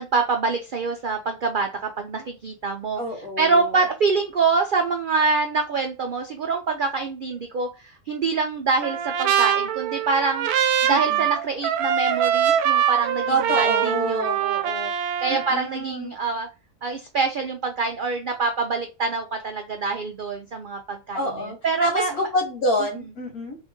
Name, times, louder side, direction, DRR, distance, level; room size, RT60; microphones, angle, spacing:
voice 1, 0.0-1.7 2.0-3.0 3.4-10.5 10.8-14.9 15.2-16.5 16.8-22.2, right 4 dB, 70° right, 4 dB, 0.4 m, -25 dB
voice 2, 3.0-3.8 10.9-11.3 13.3-14.4 15.3-16.1 21.1-23.6, equal, 80° left, 1 dB, 2.1 m, -27 dB
Trumpet, 8.8-15.6, right 9 dB, 85° right, 1.1 m, -23 dB
3.6 x 2.7 x 3.5 m, 0.29 s
omnidirectional pair, 1.5 m